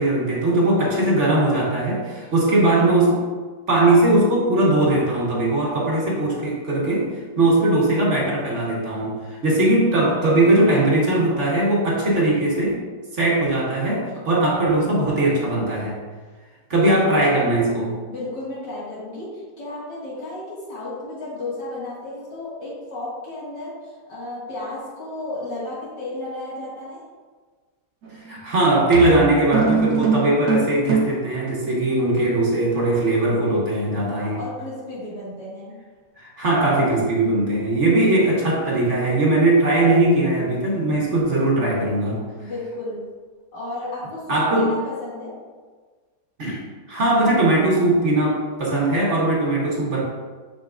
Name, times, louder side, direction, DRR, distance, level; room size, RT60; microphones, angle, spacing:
voice 1, 0.0-3.2 3.7-12.8 13.1-16.0 16.7-18.0 28.3-34.4 36.2-42.2 44.3-44.8 46.4-46.6 46.9-50.0, right 2 dB, 45° right, -4 dB, 1.5 m, -20 dB
voice 2, 18.1-27.1 34.1-35.8 42.4-43.1 43.5-45.4, left 2 dB, 85° left, -7 dB, 2.7 m, -33 dB
sound 1, 28.0-28.3 28.9-31.3, right 5 dB, 70° right, 1.6 m, -22 dB
6.8 x 6.3 x 2.5 m, 1.4 s
omnidirectional pair, 1.8 m